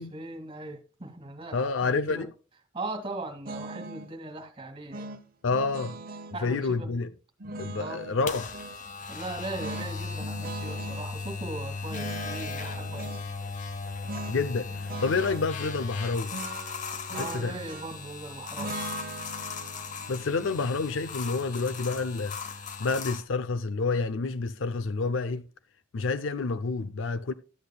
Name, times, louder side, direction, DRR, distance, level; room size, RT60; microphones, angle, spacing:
voice 1, 0.0-2.3 2.7-5.1 5.8-5.9 6.3-6.9 7.8-8.0 9.1-13.2 17.1-18.8, right 2 dB, 25° right, 2.1 m, -39 dB
voice 2, 1.5-2.3 5.4-6.0 6.4-7.1 7.6-8.5 14.3-16.3 17.1-17.6 20.1-22.4 22.8-25.5 25.9-27.3, left 4 dB, 75° left, 0.5 m, -28 dB
sound 1, 3.4-4.1 4.9-6.4 7.4-8.8 9.6-11.1 11.9-13.2 14.0-14.4 14.7-15.5 16.3-18.1 18.6-21.6, right 2 dB, 50° right, 0.8 m, -40 dB
sound 2, 8.3-23.2, left 4 dB, 40° left, 0.9 m, -37 dB
13.5 x 8.4 x 2.2 m
head